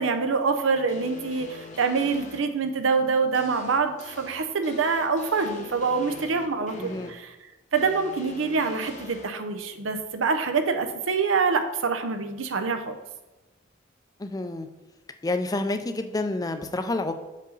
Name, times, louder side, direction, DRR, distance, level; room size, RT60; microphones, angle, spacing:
voice 1, 0.0-7.3 7.7-12.9, right 4 dB, 85° right, 7 dB, 0.7 m, -25 dB
sound 1, 0.9-2.4 3.3-7.1 7.7-9.2, left 3 dB, 40° left, 0.8 m, -43 dB
voice 2, 6.8-7.1 14.2-14.7 15.2-17.1, left 2 dB, 20° left, 8 dB, 0.4 m, -29 dB
6.4 x 5.3 x 3.9 m, 1.1 s
head